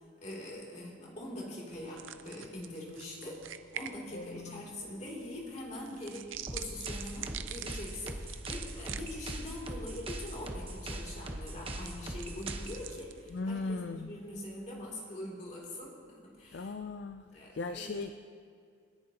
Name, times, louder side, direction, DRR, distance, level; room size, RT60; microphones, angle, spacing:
voice 1, 0.2-3.4 3.7-16.7 17.3-18.0, left 1 dB, 35° left, -3 dB, 2.9 m, -43 dB
sound 1, 1.7-14.5, right 10 dB, 75° right, 0.6 m, -48 dB
voice 2, 4.1-4.7 13.3-14.2 16.5-18.1, left 3 dB, 55° left, 8 dB, 0.4 m, -38 dB
sound 2, 6.5-12.9, right 1 dB, 30° right, 1.1 m, -41 dB
27.0 x 10.5 x 2.9 m, 2.3 s
head